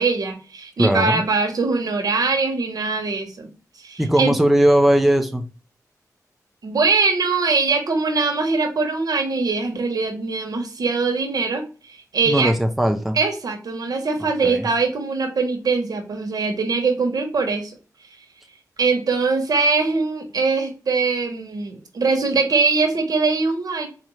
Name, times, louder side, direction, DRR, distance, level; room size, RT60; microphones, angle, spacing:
voice 1, 0.0-3.5 3.8-4.3 6.6-12.5 13.1-17.7 18.8-23.9, right 4 dB, 75° right, 4 dB, 1.0 m, -22 dB
voice 2, 0.8-1.2 4.0-5.4 12.3-13.2 14.2-14.7, right 1 dB, ahead, 5 dB, 0.4 m, -19 dB
4.2 x 2.5 x 3.0 m, 0.35 s
wide cardioid pair, 110°, 6 cm